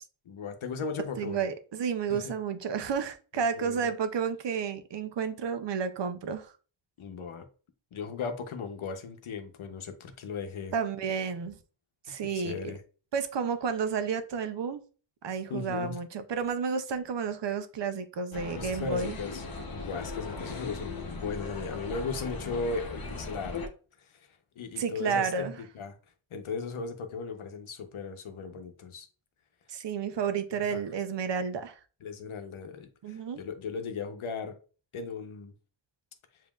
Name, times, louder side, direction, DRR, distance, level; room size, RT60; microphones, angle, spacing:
voice 1, 0.2-1.4 2.1-2.3 3.3-3.9 7.0-7.5 7.9-10.7 12.1-12.8 15.5-16.0 18.5-19.4 19.7-23.6 24.0-24.3 24.6-26.0 26.3-29.1 30.7-30.8 32.0-34.6 34.9-35.5, left 5 dB, 80° left, 0.8 m, -37 dB
voice 2, 1.2-6.5 10.7-11.6 12.1-12.7 13.1-14.8 15.2-19.2 24.8-25.5 29.7-31.8 33.0-33.4, right 6 dB, 60° right, 0.6 m, -31 dB
sound 1, 18.3-23.7, left 3 dB, 45° left, 0.8 m, -38 dB
7.2 x 2.7 x 2.3 m
wide cardioid pair, 145°, 48 cm